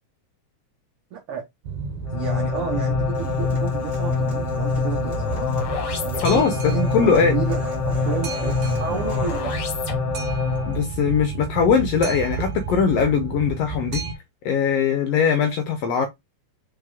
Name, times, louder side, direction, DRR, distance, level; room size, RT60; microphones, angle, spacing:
voice 1, 1.1-1.4 2.1-5.3 6.0-9.6, right 8 dB, 85° right, 1.2 m, -32 dB
Boat Water vehicle, 1.6-14.1, right 4 dB, 70° right, 2.2 m, -31 dB
sound 1, 2.1-10.9, left 5 dB, 60° left, 1.6 m, -25 dB
Human voice / Acoustic guitar, 3.1-9.6, right 2 dB, 25° right, 1.9 m, -42 dB
voice 2, 6.2-7.4 10.7-14.0 14.4-16.1, left 6 dB, 75° left, 1.5 m, -21 dB
4.8 x 4.1 x 2.2 m
omnidirectional pair, 3.4 m